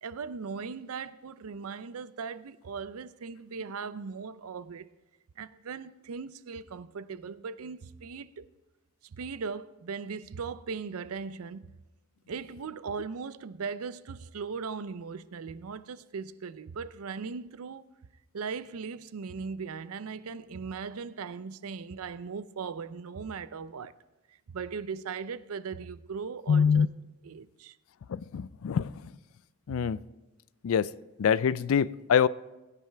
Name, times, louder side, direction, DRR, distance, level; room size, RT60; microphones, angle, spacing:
voice 1, 0.0-4.9 5.4-8.5 9.0-11.8 12.3-17.8 18.3-23.9 24.3-26.9 27.2-27.8 29.7-29.9, right 5 dB, 80° right, 0.5 m, -38 dB
voice 2, 26.5-26.9 28.1-28.9 29.7-30.0 30.6-30.9 31.2-32.3, left 7 dB, 70° left, 0.3 m, -24 dB
21.0 x 9.6 x 3.4 m
head